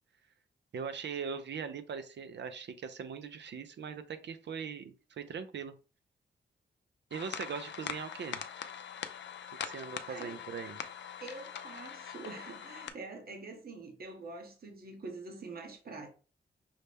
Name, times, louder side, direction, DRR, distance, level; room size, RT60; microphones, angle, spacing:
voice 1, 0.7-5.8 7.1-8.4 9.6-10.8, right 6 dB, 70° right, 0.5 m, -40 dB
sound 1, 7.1-12.9, left 8 dB, 70° left, 0.5 m, -42 dB
voice 2, 10.1-10.4 11.2-16.1, right 3 dB, 55° right, 1.0 m, -45 dB
5.6 x 2.1 x 3.3 m
cardioid pair, 70°, 19 cm